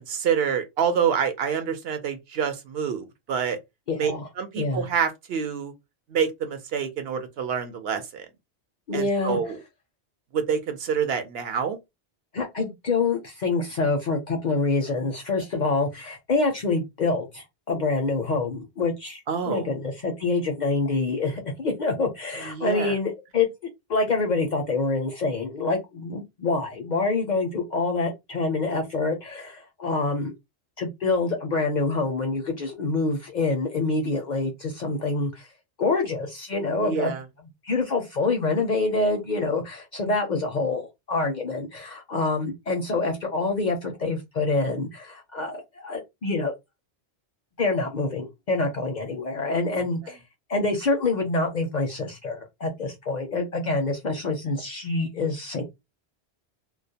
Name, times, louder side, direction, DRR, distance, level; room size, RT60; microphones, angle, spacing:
voice 1, 0.1-3.6 4.0-5.7 6.1-8.3 8.9-9.6 10.3-11.8 19.3-19.7 22.5-23.0 36.8-37.2, right 7 dB, 70° right, 0.8 m, -27 dB
voice 2, 3.9-4.3 4.6-4.9 8.9-9.4 12.3-23.5 23.9-30.3 30.8-35.5 35.8-37.2 37.6-46.5 47.6-50.2 50.5-55.6, left 3 dB, 55° left, 0.5 m, -26 dB
2.2 x 2.1 x 2.6 m
omnidirectional pair, 1.1 m